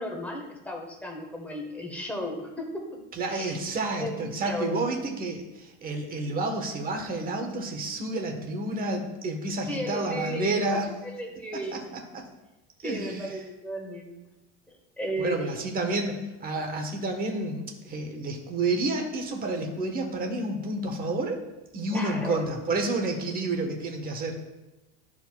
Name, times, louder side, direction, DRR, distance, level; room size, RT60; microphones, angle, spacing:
voice 1, 0.0-2.9 3.3-3.6 4.0-4.7 9.7-12.2 12.8-14.2 14.7-15.5 21.9-22.4, equal, 5° left, 0 dB, 1.4 m, -35 dB
voice 2, 3.1-10.9 11.7-11.8 12.1-12.2 12.8-13.4 15.2-21.4 21.7-24.4, right 2 dB, 25° right, 3 dB, 1.3 m, -30 dB
12.5 x 4.9 x 2.4 m, 1.0 s
supercardioid pair, 140°, 34 cm